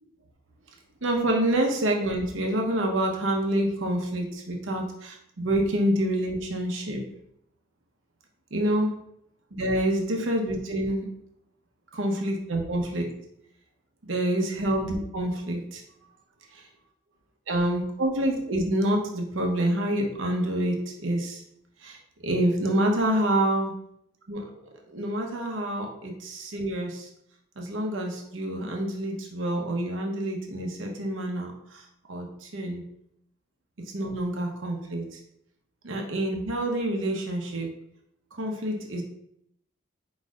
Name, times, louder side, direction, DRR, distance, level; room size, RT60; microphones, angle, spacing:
voice 1, 1.0-7.0 8.5-8.9 9.5-11.1 11.9-13.1 14.0-15.8 16.5-16.6 17.5-21.4 21.8-22.0 22.2-23.7 24.3-24.5 24.9-27.1 27.6-31.8 32.1-32.8 33.9-35.2 35.8-37.7 38.3-39.0, right 1 dB, 85° right, 1 dB, 0.9 m, -27 dB
4.8 x 4.1 x 2.4 m, 0.73 s
head